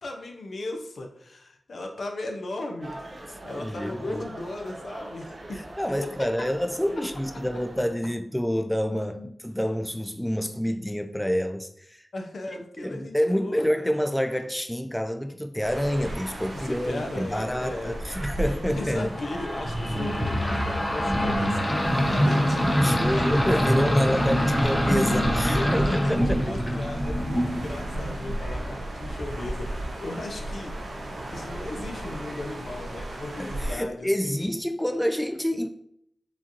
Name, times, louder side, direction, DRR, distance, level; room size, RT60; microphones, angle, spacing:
voice 1, 0.0-5.6 6.0-6.1 8.9-9.3 12.1-13.9 16.5-18.0 18.6-22.9 25.0-31.0 31.3-34.4, left 2 dB, 70° left, 0.7 m, -37 dB
sound 1, 2.8-7.9, right 1 dB, 45° right, 0.6 m, -42 dB
voice 2, 3.5-4.2 5.8-12.1 12.8-19.1 22.8-26.5 33.4-35.7, equal, 5° left, 0.3 m, -27 dB
sound 2, 15.6-33.7, right 1 dB, 85° right, 1.0 m, -35 dB
sound 3, 19.1-28.5, equal, 25° left, 0.8 m, -25 dB
4.9 x 2.6 x 2.9 m
wide cardioid pair, 70°, 0 cm